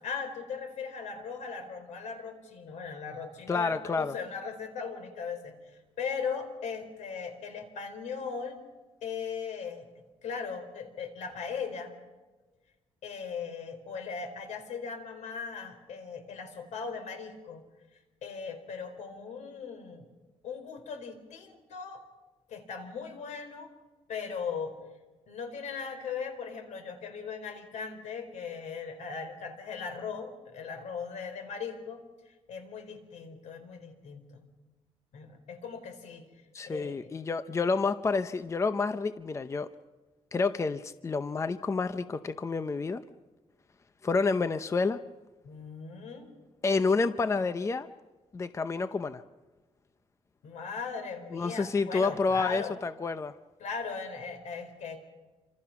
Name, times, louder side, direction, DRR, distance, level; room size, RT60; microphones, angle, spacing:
voice 1, 0.0-8.6 9.0-9.9 10.2-11.9 13.0-17.6 18.2-20.1 20.4-22.0 22.5-23.7 24.1-24.8 25.3-34.5 35.1-36.2 36.6-37.1 45.4-46.3 50.4-52.7 53.6-55.0, left 5 dB, 80° left, 7 dB, 4.5 m, -38 dB
voice 2, 3.5-4.2 36.5-39.7 40.3-43.0 44.0-45.0 46.6-47.9 48.3-49.2 51.3-53.3, left 4 dB, 25° left, 11 dB, 0.7 m, -29 dB
28.5 x 26.0 x 6.0 m, 1.2 s
cardioid pair, 130°, 12 cm